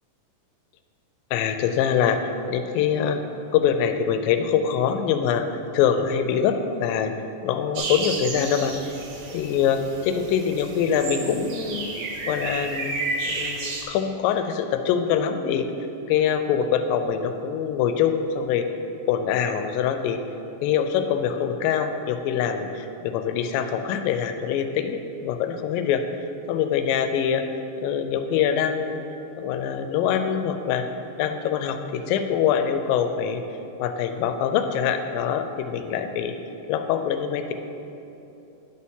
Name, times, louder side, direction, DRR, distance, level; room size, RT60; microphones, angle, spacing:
voice 1, 1.3-2.2 2.5-3.2 3.5-5.5 5.7-7.1 7.4-8.7 9.3-11.9 12.3-12.9 13.3-15.7 16.1-18.6 19.1-20.2 20.6-26.0 26.5-27.4 27.8-29.0 29.4-30.9 31.2-33.4 33.8-36.3 36.7-37.5, left 8 dB, 85° left, 8 dB, 2.3 m, -24 dB
sound 1, 7.8-13.8, right 3 dB, 65° right, 2.1 m, -32 dB
10.5 x 4.3 x 5.5 m, 3.0 s
omnidirectional pair, 4.0 m